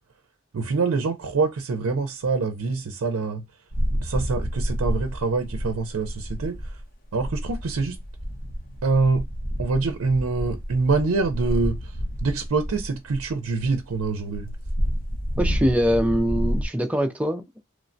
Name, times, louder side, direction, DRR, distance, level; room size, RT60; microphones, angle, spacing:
voice 1, 0.5-3.4 3.9-6.8 7.1-8.0 8.8-9.3 9.6-14.5, right 4 dB, 85° right, 0.5 m, -25 dB
sound 1, 3.7-6.8 7.1-16.7, equal, 40° left, 0.7 m, -29 dB
voice 2, 15.4-17.6, equal, 5° right, 0.3 m, -23 dB
3.1 x 2.1 x 2.5 m
head